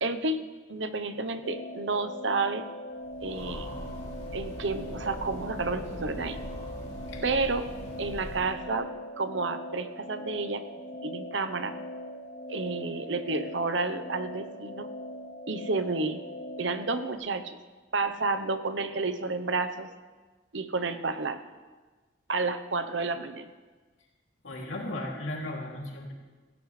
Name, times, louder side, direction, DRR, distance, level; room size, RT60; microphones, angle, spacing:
voice 1, 0.0-2.7 3.2-3.7 4.3-6.4 7.2-7.7 8.0-8.9 9.2-10.6 11.0-11.8 12.5-14.9 15.5-16.2 16.6-17.6 17.9-19.9 20.5-21.4 22.3-23.5, right 3 dB, 70° right, 10 dB, 0.9 m, -30 dB
sound 1, 1.4-17.2, left 1 dB, 50° left, 1.2 m, -41 dB
Train, 3.0-8.8, equal, 35° left, 2.7 m, -41 dB
voice 2, 24.4-26.1, left 1 dB, 80° left, -2 dB, 2.9 m, -36 dB
17.5 x 16.0 x 3.3 m, 1.3 s
head